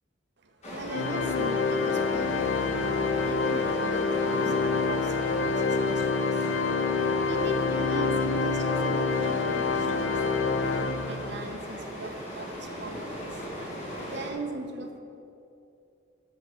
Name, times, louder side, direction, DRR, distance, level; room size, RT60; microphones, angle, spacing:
voice 1, 0.4-2.9 3.2-13.7 14.1-15.0, right 2 dB, 65° right, 4 dB, 1.1 m, -39 dB
sound 1, 0.6-14.3, equal, 35° left, 2.4 m, -38 dB
Organ, 0.9-11.5, left 4 dB, 70° left, 0.6 m, -27 dB
8.6 x 7.1 x 6.6 m, 2.6 s
head